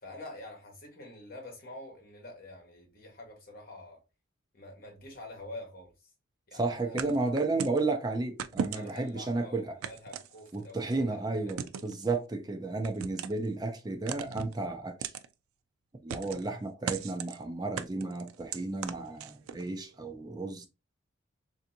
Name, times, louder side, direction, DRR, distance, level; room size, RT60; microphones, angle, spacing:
voice 1, 0.0-4.0 4.5-5.9 6.5-7.3 8.7-11.6, left 2 dB, 45° left, 1.1 m, -47 dB
voice 2, 6.5-9.8 10.5-15.1 16.0-20.7, right 3 dB, 20° right, 0.4 m, -33 dB
sound 1, 7.0-7.8 8.4-9.1 9.8-10.8 11.5-12.0 12.8-13.5 14.1-14.6 15.0-15.3 16.1-16.5 16.9-17.4 17.8-19.6, right 8 dB, 90° right, 0.3 m, -37 dB
3.3 x 2.6 x 2.6 m
head